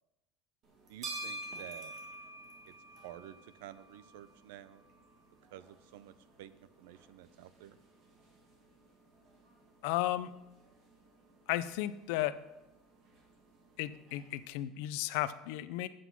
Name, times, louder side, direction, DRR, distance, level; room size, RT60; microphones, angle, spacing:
sound 1, 0.6-14.5, right 2 dB, 35° right, 1.8 m, -50 dB
voice 1, 0.9-1.9 2.7-2.8 3.0-4.8 5.5-7.8, right 12 dB, 85° right, 15 dB, 0.6 m, -51 dB
voice 2, 9.8-10.3 11.5-12.4 13.8-15.9, left 14 dB, 65° left, 14 dB, 0.5 m, -34 dB
8.1 x 7.6 x 5.9 m, 0.99 s
cardioid pair, 175°, 0 cm